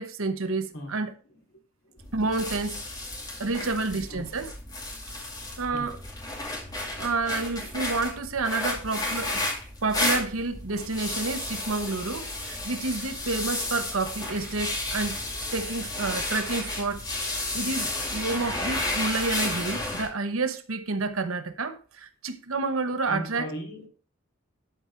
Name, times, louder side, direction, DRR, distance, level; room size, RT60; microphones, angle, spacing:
voice 1, 0.0-1.1 2.1-2.8 3.4-4.5 5.0-5.1 5.6-6.0 6.7-9.4 9.8-15.3 15.5-17.1 17.5-23.5, right 3 dB, 85° right, 1.0 m, -29 dB
voice 2, 0.7-1.4 1.8-2.1 3.6-4.3 5.7-6.0 23.1-23.9, equal, 60° left, 2.9 m, -39 dB
sound 1, 2.0-20.1, left 2 dB, 20° left, 2.5 m, -32 dB
12.0 x 4.5 x 4.7 m
head